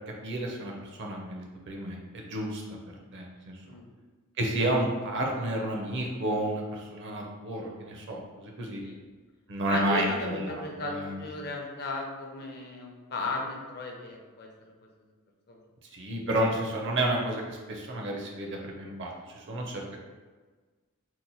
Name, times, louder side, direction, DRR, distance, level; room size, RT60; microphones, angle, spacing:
voice 1, 0.2-2.6 3.1-3.6 4.4-8.8 9.5-11.2 15.9-19.8, right 1 dB, 55° right, 0 dB, 0.6 m, -31 dB
voice 2, 9.7-14.5 15.5-15.6, left 2 dB, 50° left, 0 dB, 0.5 m, -35 dB
2.9 x 2.2 x 4.0 m, 1.3 s
head